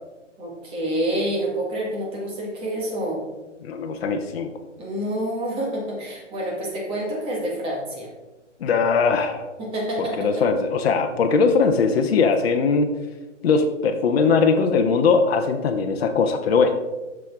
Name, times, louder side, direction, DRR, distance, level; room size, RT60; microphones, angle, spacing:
voice 1, 0.4-3.2 4.8-8.1 9.6-10.3, right 1 dB, 15° right, -3 dB, 1.7 m, -28 dB
voice 2, 3.6-4.5 8.6-9.5 10.0-12.9 13.4-16.7, left 5 dB, 55° left, 5 dB, 0.8 m, -20 dB
7.6 x 6.3 x 3.6 m, 1.1 s
hypercardioid pair, 150°, 37 cm